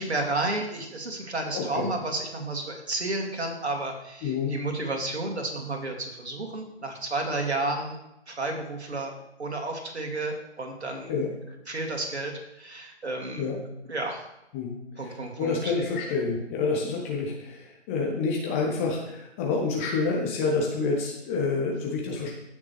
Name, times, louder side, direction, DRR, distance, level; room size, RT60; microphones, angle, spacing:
voice 1, 0.0-8.0 8.3-9.1 9.4-11.1 11.7-13.5 13.9-14.2 15.0-15.7, right 2 dB, 70° right, 2 dB, 2.6 m, -31 dB
voice 2, 1.5-1.9 4.2-4.6 11.1-11.3 13.4-13.6 14.5-22.3, left 4 dB, 10° left, -1 dB, 0.8 m, -28 dB
15.5 x 6.6 x 3.3 m, 0.87 s
figure-of-eight pair, 140°, 34 cm